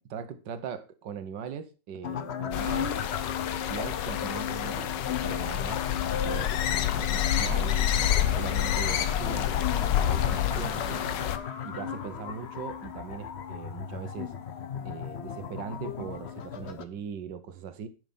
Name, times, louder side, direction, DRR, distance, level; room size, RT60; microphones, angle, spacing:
voice 1, 0.1-2.9 3.6-5.9 6.2-7.9 8.3-11.2 11.6-14.3 14.8-17.9, right 7 dB, 90° right, 1.7 m, -40 dB
sound 1, 2.0-16.8, left 8 dB, 50° left, 0.9 m, -36 dB
sound 2, 2.5-11.4, left 10 dB, 90° left, 1.5 m, -28 dB
sound 3, 7.3-13.3, left 3 dB, 20° left, 0.9 m, -46 dB
11.0 x 6.6 x 5.4 m
omnidirectional pair, 1.8 m